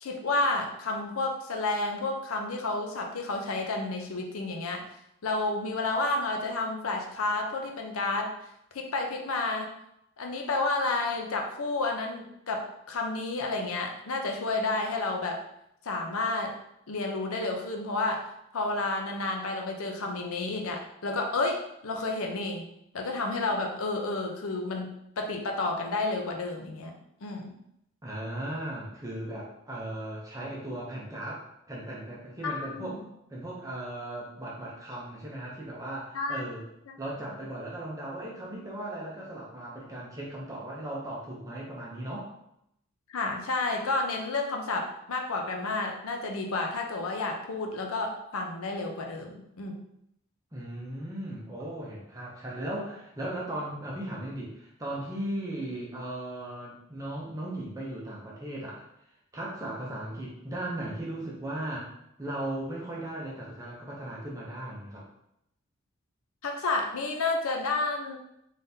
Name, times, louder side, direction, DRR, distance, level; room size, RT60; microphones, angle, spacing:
voice 1, 0.0-4.8 5.2-8.3 8.7-9.7 10.2-15.4 15.8-16.5 16.9-22.6 22.9-26.9 27.2-27.5 32.4-33.0 36.1-36.5 36.9-37.0 43.1-49.8 66.4-68.2, left 2 dB, 80° left, 2 dB, 0.6 m, -31 dB
voice 2, 28.0-33.0 33.3-36.6 37.0-42.3 50.5-58.9 59.3-61.9 62.2-65.0, right 1 dB, 15° right, -4 dB, 0.6 m, -37 dB
3.7 x 3.3 x 2.7 m, 0.79 s
head